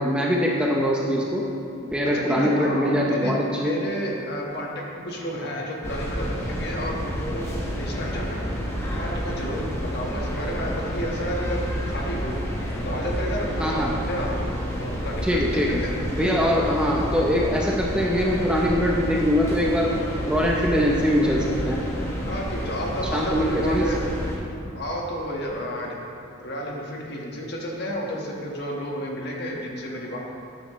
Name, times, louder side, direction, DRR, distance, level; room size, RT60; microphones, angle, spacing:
voice 1, 0.0-1.5 1.9-3.7 13.6-13.9 15.2-15.8 16.1-19.9 20.2-21.8 23.1-23.8, equal, 5° right, -3 dB, 0.6 m, -22 dB
voice 2, 2.1-8.4 8.9-12.4 12.8-15.9 22.3-24.0 24.7-26.0 26.4-30.2, equal, 50° left, -1 dB, 1.4 m, -31 dB
sound 1, 5.8-24.4, equal, 10° left, 1.1 m, -30 dB
13.0 x 9.5 x 3.1 m, 2.7 s
head